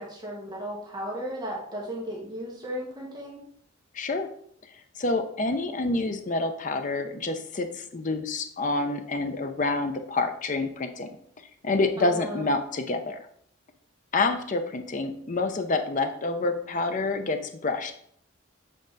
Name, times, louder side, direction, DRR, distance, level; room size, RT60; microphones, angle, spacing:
voice 1, 0.0-3.4 12.0-12.5, equal, 20° right, -3 dB, 1.2 m, -35 dB
voice 2, 3.9-4.3 5.0-11.2 11.6-13.3 14.1-17.9, left 3 dB, 40° left, 7 dB, 0.6 m, -28 dB
7.6 x 3.8 x 3.9 m, 0.65 s
head